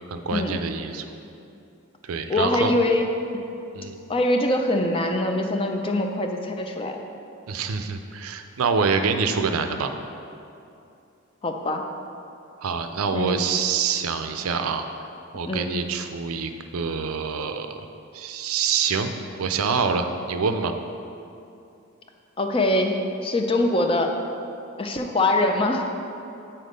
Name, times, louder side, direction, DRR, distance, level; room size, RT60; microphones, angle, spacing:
voice 1, 0.1-1.0 2.1-2.7 3.7-4.0 7.5-9.9 12.6-14.8 15.3-17.8 18.1-19.1 19.4-20.7, right 5 dB, 80° right, 7 dB, 0.5 m, -26 dB
voice 2, 2.3-3.1 4.1-7.0 11.4-11.8 13.1-13.5 15.4-15.7 22.4-23.0 23.2-24.1 24.8-25.9, left 2 dB, 25° left, 4 dB, 0.4 m, -23 dB
8.3 x 4.3 x 5.2 m, 2.7 s
head